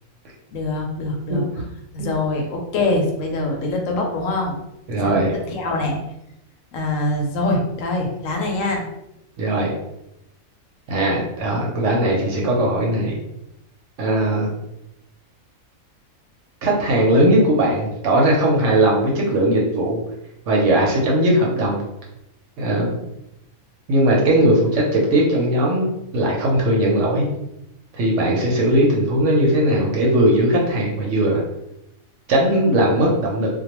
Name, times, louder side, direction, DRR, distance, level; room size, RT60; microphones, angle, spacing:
voice 1, 0.5-1.4 1.9-4.6 5.0-5.1 5.5-6.0 6.7-8.8, left 2 dB, 70° left, 1 dB, 0.9 m, -23 dB
voice 2, 4.9-5.3 9.4-9.7 10.9-13.1 14.0-14.5 16.6-20.0 20.5-21.8 22.6-23.0 23.9-25.9 26.1-27.3 27.9-31.4 32.3-33.5, right 1 dB, 65° right, -2 dB, 0.9 m, -18 dB
2.2 x 2.2 x 2.9 m, 0.85 s
omnidirectional pair, 1.5 m